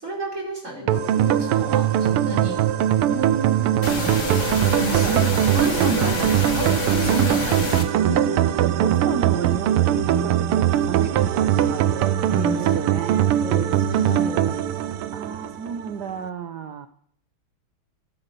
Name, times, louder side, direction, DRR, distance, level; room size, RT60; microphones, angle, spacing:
voice 1, 0.0-2.6 4.7-5.3 5.5-7.7 9.9-10.6 12.3-12.8 13.4-14.6, right 2 dB, 30° right, 5.9 m, -30 dB
sound 1, 0.8-8.6, left 3 dB, 65° left, 3.3 m, -40 dB
sound 2, 0.9-15.9, right 11 dB, 80° right, 1.7 m, -21 dB
voice 2, 3.0-4.3 4.9-5.2 5.8-6.5 8.3-12.1 12.6-13.3 15.1-16.9, right 8 dB, 60° right, 1.2 m, -32 dB
sound 3, 3.8-7.8, left 3 dB, 35° left, 2.0 m, -28 dB
15.5 x 13.0 x 6.7 m
omnidirectional pair, 2.4 m